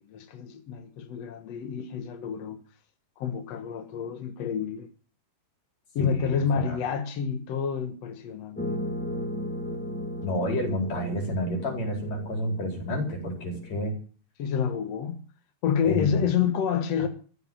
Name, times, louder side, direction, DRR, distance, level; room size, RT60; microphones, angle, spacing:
voice 1, 0.1-2.6 3.2-4.9 6.0-8.8 14.4-15.2 15.6-17.1, left 7 dB, 60° left, 1.8 m, -28 dB
voice 2, 6.0-6.8 10.2-13.9 15.8-16.3, left 1 dB, 45° left, 5.5 m, -30 dB
sound 1, 8.5-13.8, left 1 dB, 10° left, 0.7 m, -36 dB
14.5 x 9.0 x 8.6 m
omnidirectional pair, 4.4 m